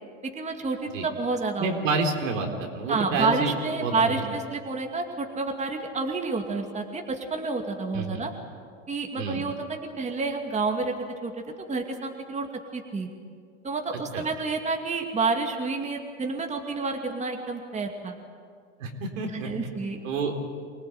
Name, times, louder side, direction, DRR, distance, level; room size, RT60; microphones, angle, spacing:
voice 1, 0.4-1.7 2.9-8.3 8.9-10.9 11.2-11.3 11.6-12.5 12.7-13.1 13.6-18.2 19.3-20.0, right 3 dB, 15° right, 3 dB, 2.5 m, -29 dB
voice 2, 1.6-2.5 2.7-3.5 3.8-4.2 7.9-8.2 9.2-9.4 14.1-14.2 18.8-19.5 20.0-20.5, right 4 dB, 75° right, 2 dB, 4.1 m, -28 dB
25.0 x 18.5 x 9.4 m, 2.3 s
hypercardioid pair, 110°, 39 cm